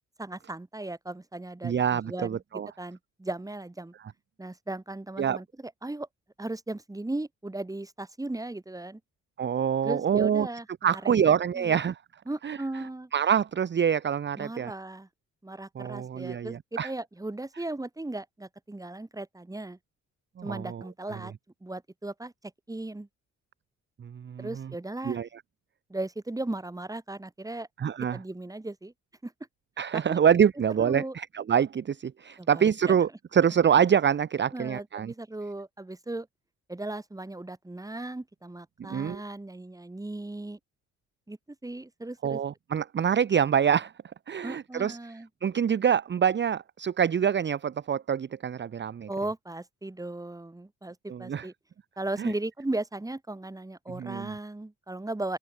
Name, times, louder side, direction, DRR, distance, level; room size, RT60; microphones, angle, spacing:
voice 1, 0.2-3.9 4.4-6.1 6.4-9.0 9.8-11.8 12.3-13.1 14.4-15.1 15.4-19.8 20.4-21.3 21.6-22.3 22.7-23.1 24.4-25.2 25.9-27.7 28.1-28.9 29.2-29.3 29.9-30.2 30.8-31.1 32.4-33.0 34.5-36.3 36.7-40.6 41.3-42.4 44.4-45.3 49.1-51.5 52.0-55.4, right 2 dB, 10° right, 2.9 m, -37 dB
voice 2, 1.6-2.7 5.2-5.4 9.4-10.5 10.8-12.0 12.4-12.6 13.1-14.7 15.7-16.9 20.4-20.8 24.0-24.7 25.0-25.3 27.8-28.2 29.8-35.1 38.9-39.2 42.2-43.9 44.3-45.0 45.4-49.1 51.1-51.5 52.2-52.3 54.0-54.3, right 8 dB, 35° right, 0.9 m, -26 dB
cardioid pair, 90°, 30 cm